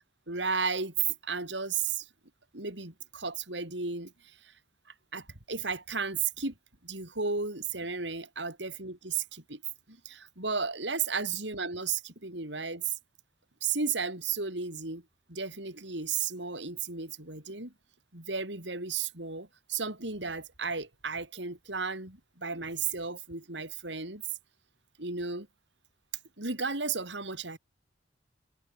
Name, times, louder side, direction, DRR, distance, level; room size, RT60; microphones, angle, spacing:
voice 1, 0.3-2.1 2.5-4.1 5.1-6.5 6.8-9.6 9.9-12.9 13.6-15.0 15.3-17.7 18.1-24.2 25.0-25.5 26.4-27.6, right 5 dB, 75° right, 5.6 m, -34 dB
head